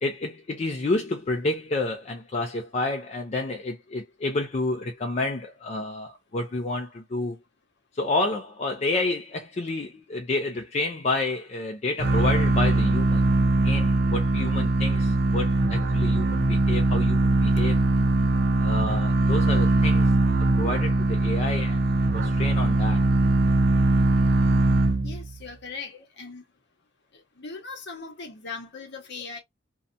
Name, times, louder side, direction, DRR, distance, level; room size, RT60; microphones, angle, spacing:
voice 1, 0.0-7.4 7.9-13.2 13.6-17.8 18.6-20.1 20.6-21.8 22.1-23.0, left 2 dB, 35° left, 0.4 m, -29 dB
sound 1, 12.0-25.4, right 2 dB, 55° right, 0.5 m, -21 dB
voice 2, 25.0-26.4 27.1-29.4, left 4 dB, 60° left, 0.9 m, -39 dB
2.7 x 2.1 x 2.5 m
head